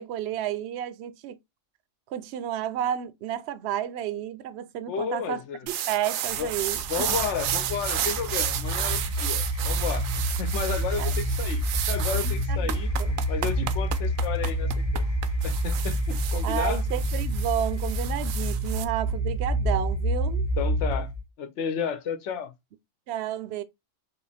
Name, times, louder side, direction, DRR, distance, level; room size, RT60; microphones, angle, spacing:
voice 1, 0.0-1.4 2.1-6.8 11.0-11.2 11.8-11.9 12.5-12.7 13.0-13.1 13.6-13.7 16.4-20.5 23.1-23.6, right 11 dB, 65° right, 0.8 m, -31 dB
voice 2, 4.9-5.7 6.4-6.5 6.9-12.9 13.3-15.1 15.4-16.8 20.6-21.1 21.4-22.5, left 7 dB, 65° left, 1.0 m, -32 dB
sound 1, 5.7-18.8, right 11 dB, 85° right, 1.0 m, -32 dB
sound 2, 6.3-21.2, equal, 40° left, 0.6 m, -28 dB
3.7 x 3.1 x 4.1 m
omnidirectional pair, 1.3 m